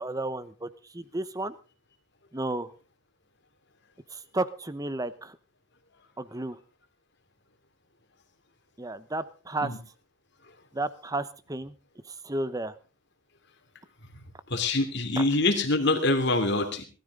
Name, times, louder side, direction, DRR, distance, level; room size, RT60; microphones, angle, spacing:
voice 1, 0.0-1.5 2.3-2.7 4.1-5.4 6.2-6.6 8.8-9.7 10.7-11.7 12.0-12.7 15.2-15.3, right 2 dB, 15° right, 15 dB, 0.8 m, -33 dB
voice 2, 14.5-16.9, left 2 dB, 55° left, 5 dB, 3.0 m, -25 dB
19.5 x 13.5 x 3.8 m, 0.35 s
head